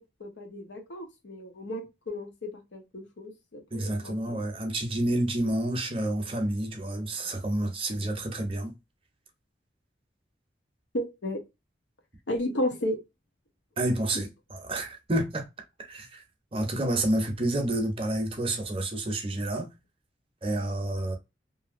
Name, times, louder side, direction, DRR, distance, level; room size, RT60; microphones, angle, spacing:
voice 1, 0.2-4.4 10.9-11.4 12.3-13.0, left 1 dB, 80° left, 0.7 m, -33 dB
voice 2, 3.7-8.7 13.8-15.5 15.9-16.2 16.5-19.7 20.4-21.1, right 1 dB, 30° right, 0.6 m, -29 dB
2.8 x 2.6 x 2.4 m
head